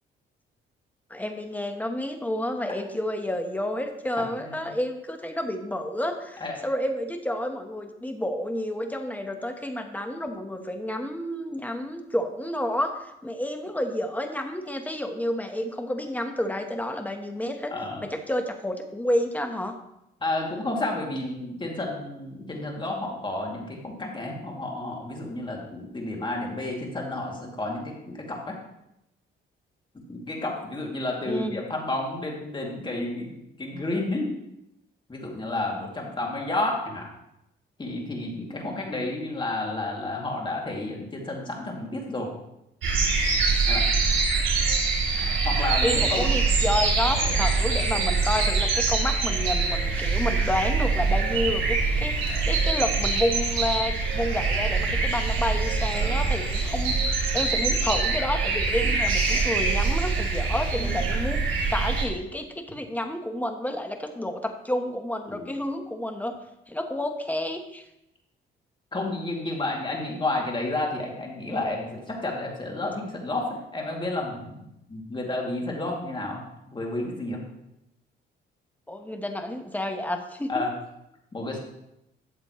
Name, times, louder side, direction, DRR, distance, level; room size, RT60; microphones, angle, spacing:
voice 1, 1.1-17.7 18.0-19.8 31.2-31.6 45.8-61.4 61.7-66.4 66.7-67.8 78.9-80.6, left 1 dB, 10° left, 5 dB, 1.2 m, -30 dB
voice 2, 17.7-18.0 20.2-28.6 29.9-34.3 35.1-37.1 37.8-42.3 43.7-43.9 45.2-46.3 47.1-47.4 55.9-56.3 58.8-58.9 60.7-61.1 65.3-65.5 68.9-74.6 74.9-76.4 76.7-77.4 80.5-80.7 81.3-81.6, left 2 dB, 25° left, -1 dB, 2.5 m, -31 dB
sound 1, 42.8-62.0, right 4 dB, 85° right, 3.1 m, -24 dB
12.5 x 7.4 x 3.1 m, 0.85 s
cardioid pair, 90°, 20 cm